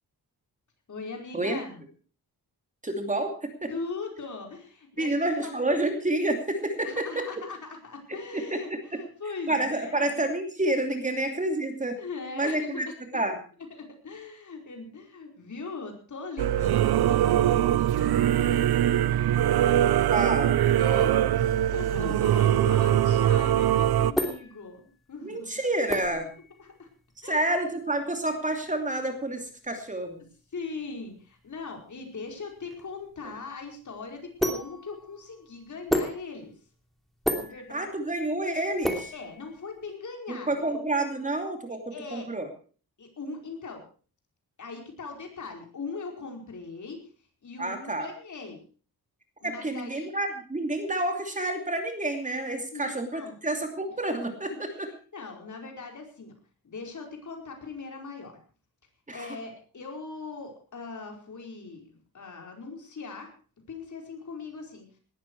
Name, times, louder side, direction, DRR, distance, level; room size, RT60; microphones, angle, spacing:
voice 1, 0.9-1.8 3.7-5.6 6.8-10.1 12.0-12.9 13.7-18.7 20.8-21.1 21.7-25.5 26.6-26.9 27.2-27.5 30.5-36.5 37.3-37.9 39.1-40.8 41.7-42.3 43.0-43.8 44.6-47.0 47.4-48.6 49.4-50.1 52.7-53.3 54.5-54.7 55.1-56.3 56.6-58.4 59.1-63.3 63.7-64.9, left 4 dB, 50° left, 2 dB, 4.9 m, -40 dB
voice 2, 2.8-3.7 5.0-7.4 8.3-9.0 9.5-12.0 12.3-12.9 13.1-13.4 20.1-21.2 25.2-26.3 27.2-30.2 37.7-39.1 40.3-42.5 47.6-48.1 49.4-54.9 59.1-59.4, right 1 dB, 20° right, 5 dB, 2.7 m, -29 dB
Singing / Musical instrument, 16.4-24.1, right 11 dB, 75° right, 0.7 m, -22 dB
sound 1, 24.1-39.9, equal, ahead, 2.9 m, -35 dB
18.5 x 13.0 x 4.7 m, 0.40 s
wide cardioid pair, 125°, 38 cm